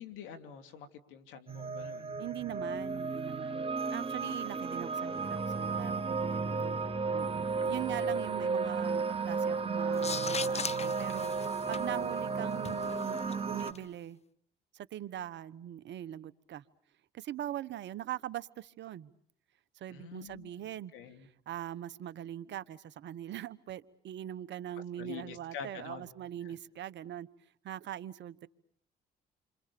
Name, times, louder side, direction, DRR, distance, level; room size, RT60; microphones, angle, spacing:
voice 1, 0.0-2.1 8.0-8.1 19.9-20.7 20.9-21.3 25.0-26.1 26.4-26.6, left 7 dB, 85° left, 8 dB, 2.9 m, -46 dB
sound 1, 1.5-13.7, right 4 dB, 30° right, 2.1 m, -33 dB
voice 2, 2.2-14.2 14.7-16.6 17.1-19.1 19.8-20.9 21.5-27.3 27.6-28.5, right 12 dB, 70° right, 16 dB, 1.2 m, -42 dB
sound 2, 9.9-13.8, left 5 dB, 35° left, 1.2 m, -40 dB
29.5 x 25.5 x 7.0 m, 0.64 s
supercardioid pair, 60°, 20 cm